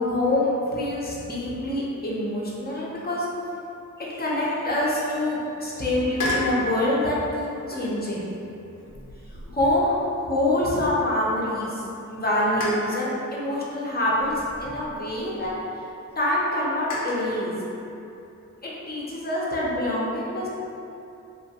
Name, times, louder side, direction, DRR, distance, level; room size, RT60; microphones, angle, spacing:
voice 1, 0.0-3.3 4.0-8.3 9.5-10.0 10.2-11.8 12.1-14.3 14.6-15.5 16.2-17.5 18.6-20.5, left 1 dB, 30° left, -6 dB, 0.6 m, -25 dB
sound 1, 6.1-6.6 7.7-8.1 8.8-11.1 11.5-11.6 12.6-13.0 14.2-15.6 16.9-17.3, left 2 dB, 90° left, 0.6 m, -33 dB
3.0 x 2.2 x 2.8 m, 2.8 s
cardioid pair, 80°, 31 cm